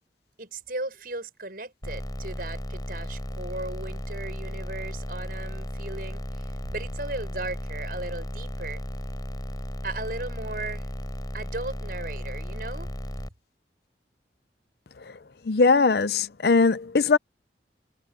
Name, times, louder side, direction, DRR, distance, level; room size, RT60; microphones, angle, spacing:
voice 1, 0.4-8.8 9.8-10.8 11.3-12.9, right 2 dB, 50° right, 6.6 m, -36 dB
sound 1, 1.8-13.3, equal, 20° left, 5.2 m, -35 dB
voice 2, 15.5-17.2, left 4 dB, 60° left, 0.5 m, -20 dB
head